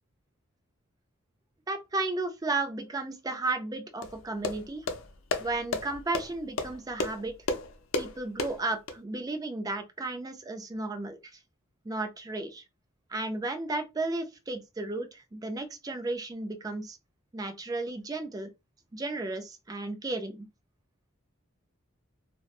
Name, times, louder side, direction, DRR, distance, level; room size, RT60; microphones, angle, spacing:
voice 1, 1.7-4.9 5.4-7.3 8.0-11.4 11.8-12.6 13.1-17.0 17.3-18.5 18.9-20.5, right 2 dB, 20° right, 0.4 m, -34 dB
sound 1, 4.0-9.0, left 3 dB, 75° left, 0.5 m, -34 dB
2.9 x 2.1 x 2.4 m
head